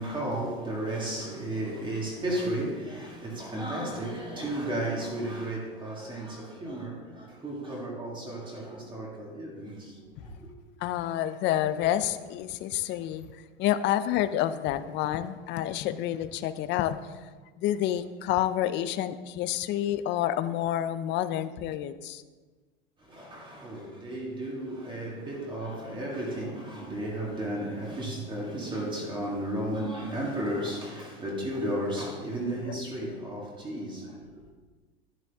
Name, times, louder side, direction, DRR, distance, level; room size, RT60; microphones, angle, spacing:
voice 1, 0.0-10.5 23.0-34.5, right 1 dB, 15° right, 2.0 m, -34 dB
voice 2, 10.8-13.3 13.6-17.0 17.6-22.2, left 12 dB, 35° left, 0.6 m, -28 dB
11.0 x 10.5 x 3.6 m
supercardioid pair, 125°, 32 cm